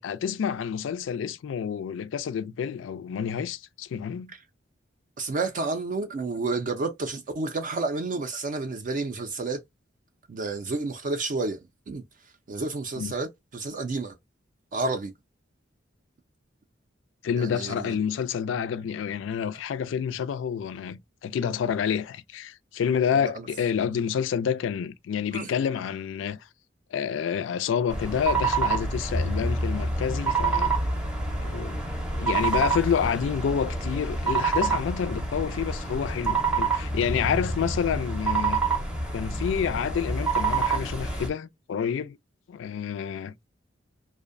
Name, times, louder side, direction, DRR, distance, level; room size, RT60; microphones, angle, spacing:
voice 1, 0.0-4.3 13.0-13.1 17.2-26.4 26.9-30.7 31.4-31.8 32.1-38.6 39.1-42.2 42.5-43.3, left 7 dB, 75° left, 0.3 m, -28 dB
voice 2, 5.2-9.6 10.3-11.6 11.9-12.0 12.5-14.1 14.7-15.1 17.4-18.0 23.1-23.5 25.3-25.5, right 3 dB, 45° right, 0.4 m, -30 dB
sound 1, 27.9-41.3, right 4 dB, 5° right, 0.6 m, -27 dB
2.5 x 2.0 x 2.4 m
head